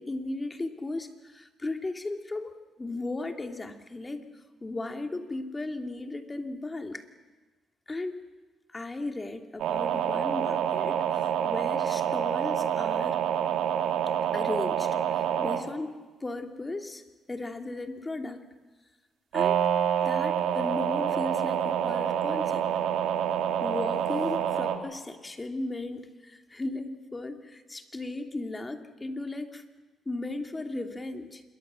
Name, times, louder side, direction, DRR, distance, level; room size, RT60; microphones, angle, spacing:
voice 1, 0.0-2.5 2.8-4.2 4.6-7.0 7.9-8.2 8.7-13.2 14.3-17.0 17.3-18.4 19.3-19.6 20.0-22.6 23.6-29.6 30.1-31.4, left 2 dB, 20° left, 5 dB, 2.6 m, -36 dB
sound 1, 9.6-15.6 19.3-24.8, right 9 dB, 85° right, 2.5 m, -27 dB
27.0 x 22.5 x 7.6 m, 1.3 s
cardioid pair, 90°, 0 cm